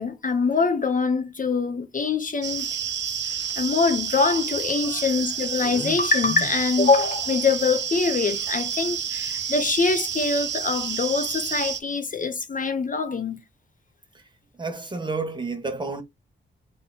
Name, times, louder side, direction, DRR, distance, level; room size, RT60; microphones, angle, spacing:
voice 1, 0.0-2.7 3.6-13.4, left 4 dB, 40° left, 0.7 m, -24 dB
sound 1, 2.4-11.8, right 7 dB, 60° right, 0.7 m, -29 dB
voice 2, 14.6-16.0, right 3 dB, 20° right, 1.2 m, -31 dB
3.8 x 2.9 x 3.9 m
cardioid pair, 95°, 21 cm